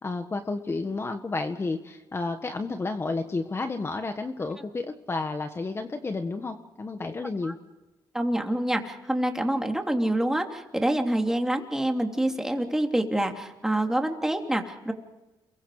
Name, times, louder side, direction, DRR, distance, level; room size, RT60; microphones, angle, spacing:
voice 1, 0.0-7.6, left 3 dB, 30° left, 7 dB, 1.6 m, -31 dB
voice 2, 8.1-14.9, right 1 dB, 5° right, 3 dB, 3.1 m, -26 dB
30.0 x 22.5 x 5.0 m, 1.1 s
cardioid pair, 95°, 9 cm